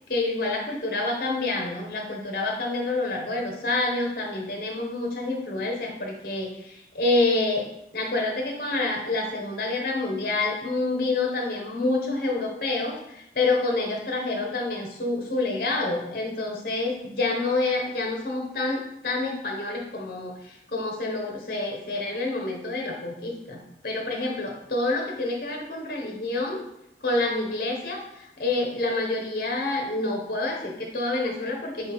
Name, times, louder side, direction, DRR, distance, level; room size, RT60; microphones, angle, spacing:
voice 1, 0.1-7.7 7.9-26.6 27.0-31.9, left 2 dB, 55° left, 1 dB, 0.8 m, -28 dB
4.0 x 3.5 x 2.9 m, 0.79 s
head